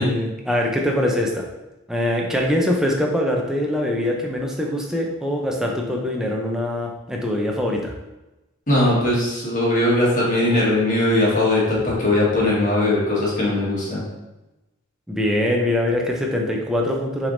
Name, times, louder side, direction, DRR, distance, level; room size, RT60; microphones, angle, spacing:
voice 1, 0.0-1.5 1.9-7.9 15.1-17.3, left 1 dB, 5° right, 0 dB, 0.5 m, -23 dB
voice 2, 8.7-14.0, left 1 dB, 40° left, -6 dB, 1.4 m, -19 dB
5.9 x 3.4 x 2.6 m, 1.0 s
head